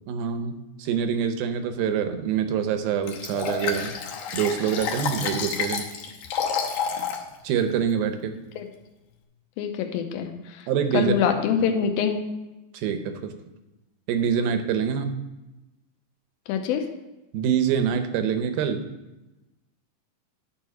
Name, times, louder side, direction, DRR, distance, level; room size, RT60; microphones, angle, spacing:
voice 1, 0.1-3.9 4.3-5.8 7.4-8.3 10.7-11.2 12.7-13.3 14.1-15.2 17.3-18.9, right 7 dB, 80° right, 8 dB, 2.6 m, -25 dB
Liquid, 3.1-7.2 7.7-7.8, left 6 dB, 70° left, 2.2 m, -29 dB
voice 2, 9.6-10.7 10.9-12.2 16.5-16.8, left 7 dB, 85° left, 5 dB, 2.5 m, -25 dB
10.5 x 4.6 x 6.0 m, 1.0 s
omnidirectional pair, 4.2 m